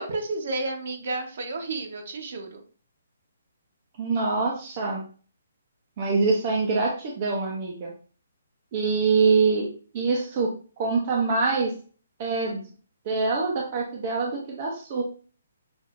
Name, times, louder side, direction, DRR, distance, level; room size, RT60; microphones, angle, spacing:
voice 1, 0.0-2.6, right 2 dB, 50° right, 3 dB, 1.0 m, -31 dB
voice 2, 4.0-5.0 6.0-7.9 8.7-9.7 9.9-10.5 10.8-11.7 12.2-12.6 13.1-15.0, right 4 dB, 30° right, -2 dB, 0.7 m, -24 dB
6.0 x 2.6 x 2.5 m, 0.40 s
hypercardioid pair, 170°, 0 cm